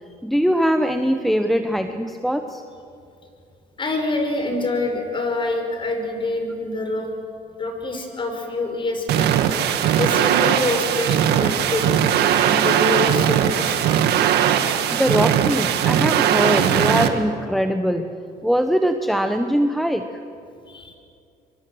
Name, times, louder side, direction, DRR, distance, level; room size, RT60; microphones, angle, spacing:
voice 1, 0.2-2.6 14.9-18.1 18.4-20.0, equal, ahead, 6 dB, 1.0 m, -21 dB
voice 2, 3.8-7.1 7.6-9.3 10.0-14.0 20.7-21.0, left 2 dB, 30° left, 4 dB, 5.5 m, -26 dB
sound 1, 9.1-17.1, right 9 dB, 75° right, 1.8 m, -19 dB
25.0 x 24.5 x 7.9 m, 2.5 s
cardioid pair, 110°, 17 cm